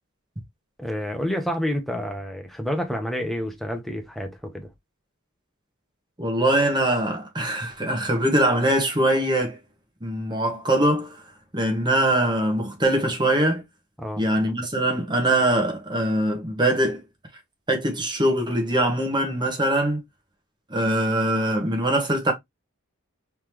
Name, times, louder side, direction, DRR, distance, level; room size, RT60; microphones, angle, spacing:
voice 1, 0.8-4.7 14.0-14.2, equal, ahead, 0.9 m, -29 dB
voice 2, 6.2-9.6 10.0-11.2 11.5-13.6 14.2-17.0 17.7-20.0 20.7-22.3, right 1 dB, 20° right, 1.4 m, -22 dB
4.0 x 3.5 x 3.0 m
head